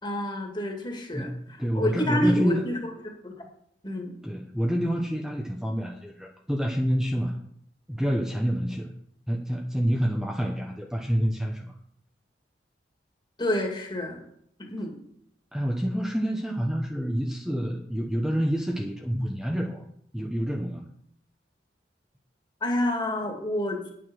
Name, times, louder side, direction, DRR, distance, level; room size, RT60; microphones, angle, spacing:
voice 1, 0.0-1.3 1.7-3.3 3.8-4.1 13.4-14.2 14.6-14.9 22.6-23.9, left 1 dB, 25° left, 2 dB, 2.3 m, -28 dB
voice 2, 1.6-2.6 4.2-7.4 7.9-8.9 9.3-11.7 15.5-19.8 20.1-20.9, equal, 5° right, 1 dB, 0.9 m, -27 dB
9.6 x 7.7 x 6.3 m, 0.70 s
head